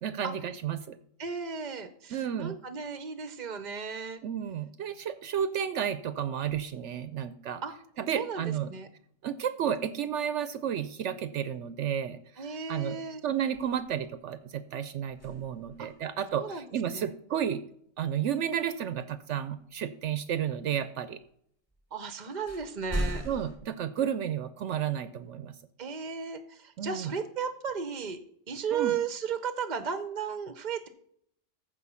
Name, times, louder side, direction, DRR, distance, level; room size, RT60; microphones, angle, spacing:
voice 1, 0.0-1.0 2.1-2.5 4.2-7.6 8.0-8.7 9.2-13.0 13.2-17.6 18.0-21.2 23.2-25.6 26.8-27.1 28.7-29.0, right 9 dB, 75° right, 13 dB, 0.9 m, -32 dB
voice 2, 1.2-4.2 7.6-7.7 8.1-8.9 12.4-13.2 15.8-15.9 16.4-17.1 21.9-23.3 25.8-28.2 28.5-30.9, right 6 dB, 45° right, 11 dB, 0.8 m, -35 dB
sound 1, 13.5-14.3 15.1-16.0 19.6-19.7 21.7-21.8 22.5-23.6, equal, 10° left, 1.5 m, -37 dB
14.5 x 5.0 x 5.5 m, 0.69 s
omnidirectional pair, 1.3 m